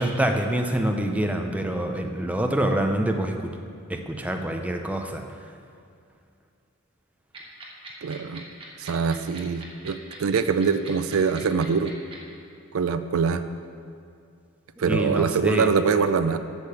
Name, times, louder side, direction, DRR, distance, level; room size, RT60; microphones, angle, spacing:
voice 1, 0.0-3.6 3.9-5.2 14.9-15.7, right 1 dB, 5° right, 4 dB, 0.6 m, -26 dB
sound 1, 7.3-12.2, right 3 dB, 25° right, 1.5 m, -41 dB
voice 2, 8.0-8.4 8.8-11.9 12.7-13.4 14.8-16.4, right 5 dB, 70° right, 11 dB, 0.4 m, -24 dB
8.1 x 6.7 x 6.9 m, 2.4 s
head